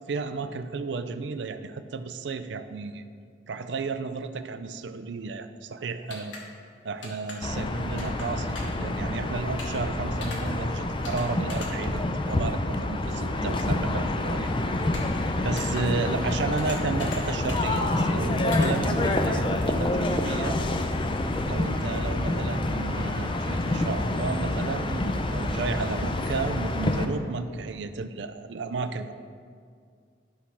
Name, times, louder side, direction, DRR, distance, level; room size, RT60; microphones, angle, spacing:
voice 1, 0.1-3.0 3.5-6.3 6.8-15.0 15.4-20.6 21.4-29.1, right 4 dB, 75° right, 10 dB, 0.5 m, -33 dB
sound 1, 6.1-6.4 7.0-7.4 8.0-8.3 8.5-8.8 9.6-9.8 10.2-10.4 11.0-11.2 11.5-11.7 14.9-15.2 15.6-15.8 16.6-17.2 17.5-17.7 18.5-18.7, left 3 dB, 90° left, 1.5 m, -39 dB
sound 2, 7.4-27.0, left 1 dB, 25° left, 0.5 m, -27 dB
11.5 x 4.1 x 5.7 m, 2.2 s
head